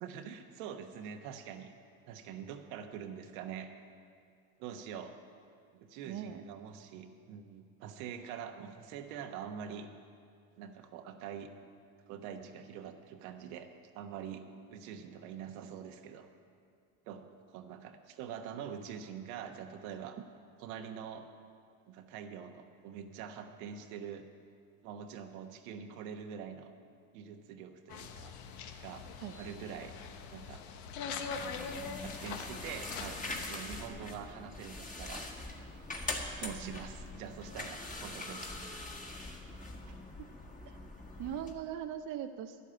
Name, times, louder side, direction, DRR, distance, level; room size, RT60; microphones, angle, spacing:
voice 1, 0.0-1.7 2.1-3.7 4.6-5.1 5.7-9.9 10.6-11.5 12.1-14.4 14.7-16.3 17.1-17.2 17.5-20.2 20.6-21.3 21.9-24.2 24.8-26.7 27.1-28.3 28.8-29.0 29.4-29.9 30.3-30.6 32.0-35.2 36.4-38.9, right 8 dB, 75° right, 5 dB, 1.2 m, -45 dB
voice 2, 6.0-6.4 20.2-20.3 29.2-29.3 36.4-36.8 39.9-40.0 40.6-40.8 41.2-42.6, right 10 dB, 45° right, 7 dB, 0.7 m, -40 dB
sound 1, 27.9-33.5, left 5 dB, 85° left, 1.1 m, -43 dB
sound 2, 31.3-41.5, left 2 dB, 20° left, 1.6 m, -43 dB
11.0 x 8.3 x 8.8 m, 2.4 s
supercardioid pair, 95°, 43 cm